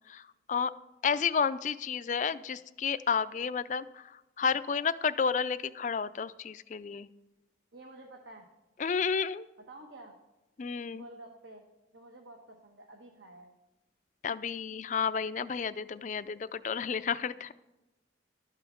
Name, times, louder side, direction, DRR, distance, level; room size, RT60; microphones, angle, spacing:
voice 1, 0.1-0.7 1.0-7.1 8.8-9.5 10.6-11.1 14.2-17.5, left 6 dB, 40° left, 14 dB, 0.4 m, -31 dB
voice 2, 7.7-8.5 9.6-10.1 10.9-11.6 11.9-13.5, right 2 dB, 80° right, 2 dB, 1.2 m, -50 dB
12.0 x 5.6 x 6.6 m, 1.0 s
head